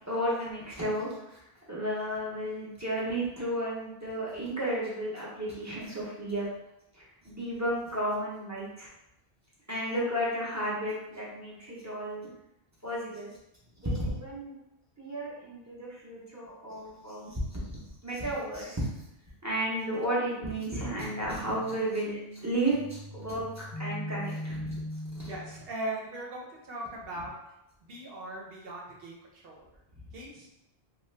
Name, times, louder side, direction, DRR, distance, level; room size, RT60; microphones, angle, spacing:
voice 1, 0.1-1.4 1.7-6.5 6.9-8.9 9.7-12.3 12.8-13.3 13.8-14.6 15.0-17.6 18.0-18.9 19.4-24.8 25.1-25.3, right 1 dB, 20° right, -7 dB, 0.7 m, -33 dB
sound 1, 19.7-25.7, left 1 dB, 65° left, 0.9 m, -41 dB
voice 2, 25.2-27.3 27.8-30.5, right 1 dB, 70° right, -3 dB, 0.9 m, -40 dB
2.8 x 2.4 x 3.2 m, 0.87 s
omnidirectional pair, 1.0 m